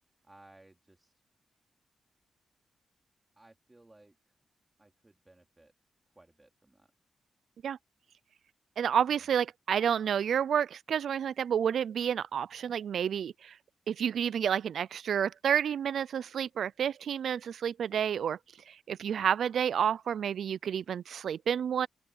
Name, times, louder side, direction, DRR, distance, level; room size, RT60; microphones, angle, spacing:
voice 1, 0.3-1.1 3.4-4.3 4.8-5.7 6.2-6.9 9.1-9.3, right 2 dB, 15° right, 3.7 m, -60 dB
voice 2, 8.8-13.6 13.9-18.4 18.7-21.9, right 8 dB, 75° right, 0.4 m, -30 dB
open air
cardioid pair, 90°, 0 cm